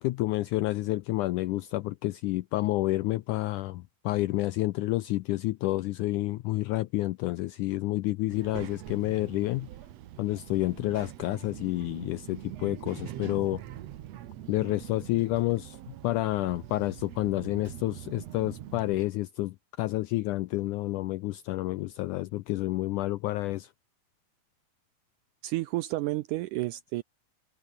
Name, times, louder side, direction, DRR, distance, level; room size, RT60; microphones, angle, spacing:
voice 1, 0.0-9.7 10.2-13.6 14.5-15.8 16.0-23.7, left 17 dB, 90° left, 1.8 m, -29 dB
Child speech kid speaking, 8.3-19.1, right 12 dB, 65° right, 1.7 m, -43 dB
voice 2, 25.4-27.0, right 17 dB, 90° right, 1.8 m, -31 dB
omnidirectional pair, 4.3 m